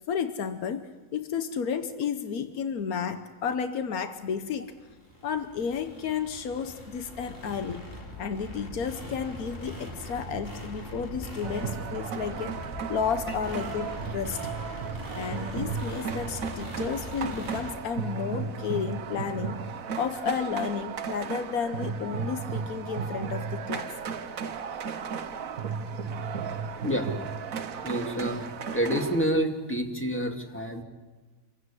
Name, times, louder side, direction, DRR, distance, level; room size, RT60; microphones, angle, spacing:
voice 1, 0.1-4.7 5.2-7.8 8.2-12.6 12.9-14.4 15.2-19.7 20.0-23.9, left 6 dB, 90° left, 9 dB, 1.5 m, -32 dB
sound 1, 4.4-17.7, equal, 40° left, 4.5 m, -41 dB
sound 2, 11.4-29.3, right 6 dB, 70° right, 1.4 m, -35 dB
voice 2, 27.8-30.8, equal, 10° left, 3 dB, 2.2 m, -28 dB
27.0 x 16.0 x 9.8 m, 1.3 s
omnidirectional pair, 1.5 m